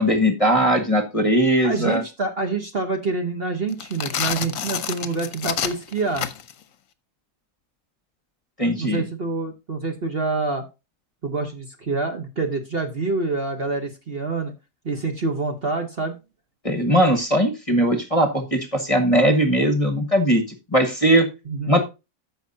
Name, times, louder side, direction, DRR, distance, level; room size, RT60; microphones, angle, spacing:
voice 1, 0.0-2.0 8.6-9.0 16.6-20.4 20.7-21.3 21.7-21.8, equal, 25° left, 5 dB, 1.2 m, -19 dB
voice 2, 1.6-6.3 8.8-10.6 11.2-14.5 14.8-16.2 21.5-21.8, right 3 dB, 40° right, 4 dB, 1.2 m, -26 dB
sound 1, 3.7-6.6, left 9 dB, 60° left, 1.1 m, -28 dB
14.0 x 5.7 x 2.8 m, 0.26 s
omnidirectional pair, 1.7 m